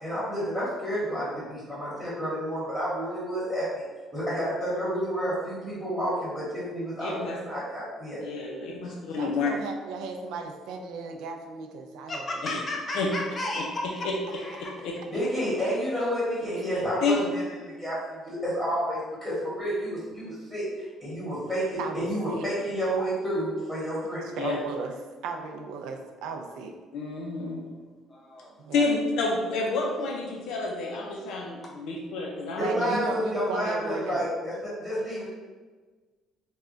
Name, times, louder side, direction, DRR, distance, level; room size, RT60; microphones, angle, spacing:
voice 1, 0.0-3.8 4.1-8.2 15.1-24.3 32.6-35.3, equal, ahead, -9 dB, 1.0 m, -30 dB
voice 2, 7.0-7.4 8.2-9.5 12.4-12.6 13.0-13.1 13.6-13.7 14.0-14.1 14.8-15.2 17.0-17.4 24.4-24.6 26.9-27.6 28.7-32.8, left 3 dB, 70° left, -1 dB, 0.5 m, -29 dB
voice 3, 9.2-12.2 16.6-16.7 21.8-22.5 24.2-25.0 25.2-26.8 28.6-28.9 32.5-34.2, right 4 dB, 80° right, 3 dB, 0.4 m, -35 dB
voice 4, 12.1-14.7 28.1-28.5 31.6-31.7, left 1 dB, 20° left, -1 dB, 0.6 m, -34 dB
3.5 x 2.2 x 3.7 m, 1.4 s
cardioid pair, 170°, 0 cm